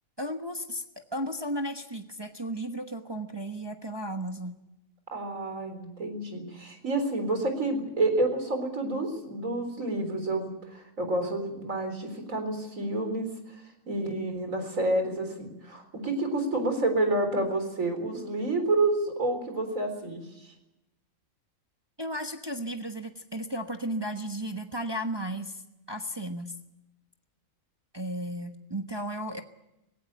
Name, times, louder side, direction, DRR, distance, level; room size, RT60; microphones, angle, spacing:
voice 1, 0.2-4.6 22.0-25.6 25.9-26.5 27.9-29.4, right 1 dB, 20° right, 5 dB, 1.1 m, -34 dB
voice 2, 5.1-13.3 13.9-20.2, right 2 dB, 75° right, 6 dB, 4.4 m, -29 dB
18.0 x 17.5 x 8.9 m, 0.92 s
omnidirectional pair, 1.4 m